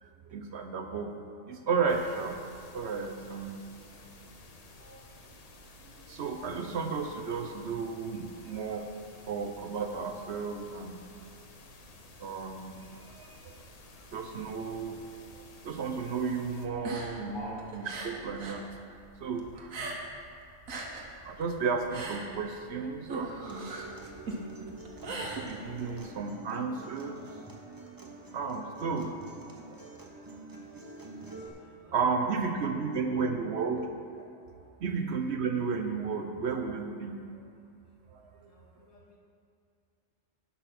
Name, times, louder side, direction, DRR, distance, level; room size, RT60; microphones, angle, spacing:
voice 1, 0.0-3.7 4.8-5.0 6.1-8.9 9.3-11.0 12.2-13.5 14.1-15.0 15.3-18.7 19.2-19.9 21.2-23.5 25.1-27.4 28.3-29.2 29.7-29.8 31.5-31.6 31.8-33.9 34.8-37.3 38.1-38.5, right 5 dB, 60° right, 5 dB, 0.8 m, -33 dB
sound 1, 1.9-16.7, left 2 dB, 40° left, 0.6 m, -53 dB
sound 2, 16.7-18.7 18.9-20.3 20.5-26.0, right 2 dB, 75° right, 1.5 m, -40 dB
Acoustic guitar, 23.5-31.5, right 2 dB, 20° right, 0.8 m, -46 dB
voice 2, 30.9-31.9 34.1-34.3 38.4-39.2, left 2 dB, 70° left, -4 dB, 2.3 m, -51 dB
10.5 x 5.7 x 5.9 m, 2.3 s
omnidirectional pair, 1.4 m